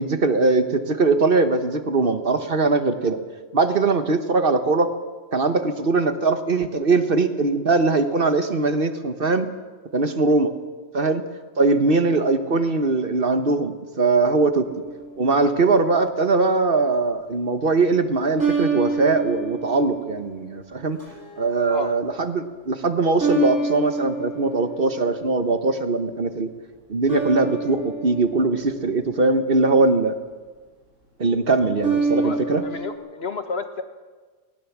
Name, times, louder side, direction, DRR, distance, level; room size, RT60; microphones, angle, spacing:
voice 1, 0.0-3.2 3.5-4.9 5.3-9.5 9.9-10.5 10.9-11.2 11.6-14.7 15.2-21.0 21.4-26.5 26.9-30.2 31.2-32.6, right 3 dB, 50° right, 9 dB, 1.3 m, -21 dB
sound 1, 14.6-15.4 18.4-20.4 21.0-21.5 23.2-25.2 27.1-29.5 31.8-32.9, right 4 dB, 90° right, 7.1 m, -27 dB
voice 2, 32.1-33.8, left 4 dB, 55° left, 8 dB, 1.4 m, -32 dB
20.0 x 18.0 x 7.3 m, 1.4 s
omnidirectional pair, 1.3 m